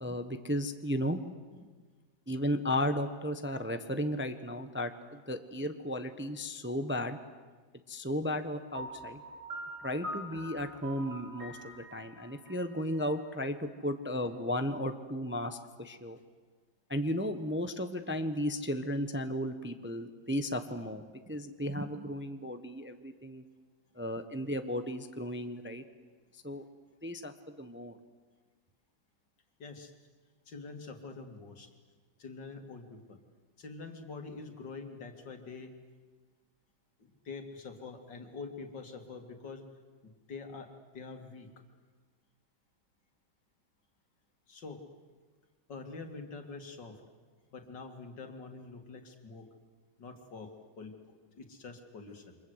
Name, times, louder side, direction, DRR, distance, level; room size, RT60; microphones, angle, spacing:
voice 1, 0.0-1.2 2.3-7.2 7.9-9.2 9.8-16.2 16.9-23.4 24.0-25.8 26.4-26.6 27.0-28.0, equal, 10° right, 8 dB, 0.9 m, -34 dB
Piano, 8.7-13.6, equal, 40° right, 6.0 m, -44 dB
voice 2, 29.6-29.9 30.5-31.7 32.2-33.2 33.6-35.8 37.0-39.7 40.0-41.5 44.5-44.8 45.7-47.0 47.5-49.5 50.0-52.4, left 4 dB, 70° left, 5 dB, 3.0 m, -46 dB
29.0 x 25.0 x 8.1 m, 1.4 s
omnidirectional pair, 2.0 m